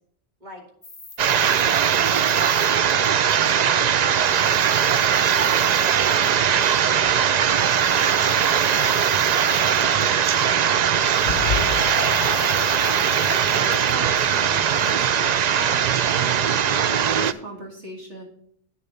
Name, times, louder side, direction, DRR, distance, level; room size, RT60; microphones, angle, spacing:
sound 1, 0.8-3.8 4.1-6.9 7.5-10.7 11.0-14.9, left 3 dB, 25° left, 1.1 m, -42 dB
sound 2, 1.2-17.3, right 8 dB, 60° right, 0.4 m, -20 dB
voice 1, 1.3-5.0 5.3-6.2 6.8-8.1 8.5-9.7 10.4-11.2 11.5-12.0, left 1 dB, 40° right, 0 dB, 2.5 m, -43 dB
Cheering / Applause, 7.0-14.7, left 8 dB, 75° left, 1.0 m, -35 dB
voice 2, 13.2-18.2, right 1 dB, 75° right, 1 dB, 2.5 m, -37 dB
9.5 x 6.8 x 5.5 m, 0.69 s
omnidirectional pair, 1.2 m